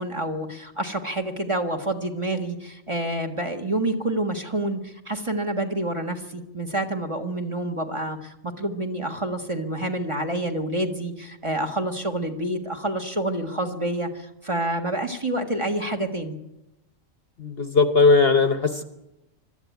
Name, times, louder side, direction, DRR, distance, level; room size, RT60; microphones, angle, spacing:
voice 1, 0.0-16.4, right 1 dB, 20° right, 5 dB, 1.6 m, -28 dB
voice 2, 17.4-18.8, left 4 dB, 50° left, 9 dB, 1.1 m, -18 dB
23.0 x 13.0 x 9.4 m, 0.93 s
omnidirectional pair, 1.4 m